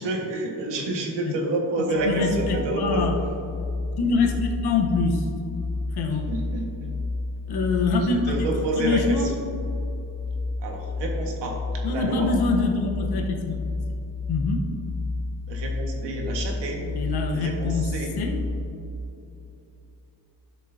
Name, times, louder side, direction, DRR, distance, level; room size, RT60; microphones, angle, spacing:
voice 1, 0.0-3.1 6.1-6.9 8.0-9.3 10.6-12.3 15.5-17.0 17.3-18.1, right 2 dB, 85° right, 0 dB, 1.7 m, -29 dB
voice 2, 1.8-3.1 4.0-5.3 5.9-6.2 7.5-8.5 8.8-9.3 11.8-13.6 14.3-14.6 16.9-17.9 18.2-18.4, left 4 dB, 65° left, 1 dB, 1.1 m, -25 dB
sound 1, 1.9-18.7, left 3 dB, 15° right, 1.9 m, -31 dB
12.5 x 6.6 x 2.8 m, 2.8 s
cardioid pair, 120°, 41 cm